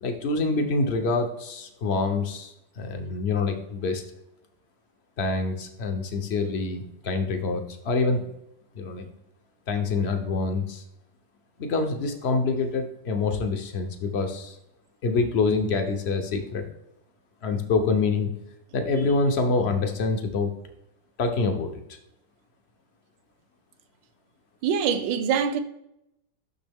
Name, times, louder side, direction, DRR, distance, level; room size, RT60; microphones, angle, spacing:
voice 1, 0.0-4.0 5.2-8.2 8.7-9.1 9.7-10.8 11.6-14.6 15.0-16.7 17.4-18.3 18.7-20.5 21.2-22.0, left 3 dB, 65° left, 0.6 m, -26 dB
voice 2, 24.6-25.6, right 7 dB, 75° right, 1.3 m, -24 dB
6.3 x 6.1 x 3.4 m
omnidirectional pair, 2.0 m